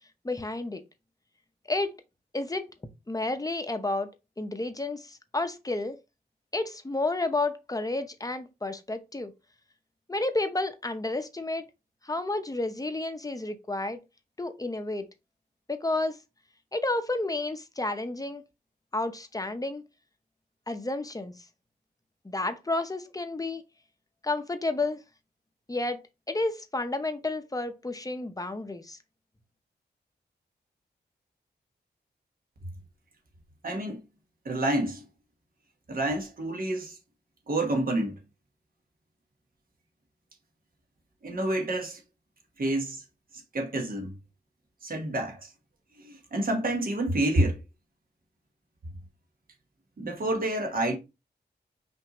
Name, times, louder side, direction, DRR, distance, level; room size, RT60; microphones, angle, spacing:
voice 1, 0.2-0.8 1.7-2.0 2.3-2.7 3.1-4.1 4.4-6.0 6.5-9.3 10.1-11.6 12.0-14.0 14.4-15.1 15.7-16.2 16.7-18.4 18.9-19.8 20.7-21.4 22.2-23.6 24.2-25.0 25.7-26.0 26.3-29.0, left 2 dB, 20° left, 0.7 m, -31 dB
voice 2, 33.6-34.0 34.4-35.0 35.9-37.0 37.5-38.2 41.2-42.0 42.6-43.0 43.5-44.1 44.8-45.5 46.0-47.6 50.0-51.0, right 1 dB, 50° right, 1.2 m, -28 dB
5.7 x 2.6 x 2.9 m
cardioid pair, 65°, 18 cm